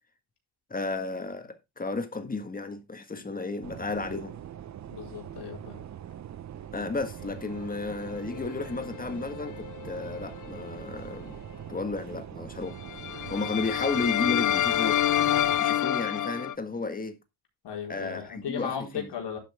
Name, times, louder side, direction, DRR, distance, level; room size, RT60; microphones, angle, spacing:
voice 1, 0.7-4.4 6.7-11.4 11.7-12.8 13.3-15.0 15.6-17.2 17.9-19.1, left 3 dB, 20° left, 1.6 m, -33 dB
sound 1, 3.6-15.6, right 10 dB, 35° right, 0.6 m, -43 dB
voice 2, 4.9-5.8 17.6-19.4, left 7 dB, 60° left, 4.6 m, -36 dB
sound 2, 8.2-10.0 10.4-10.6 12.8-16.5, left 12 dB, 40° left, 0.5 m, -28 dB
11.5 x 8.2 x 3.5 m
cardioid pair, 170°, 47 cm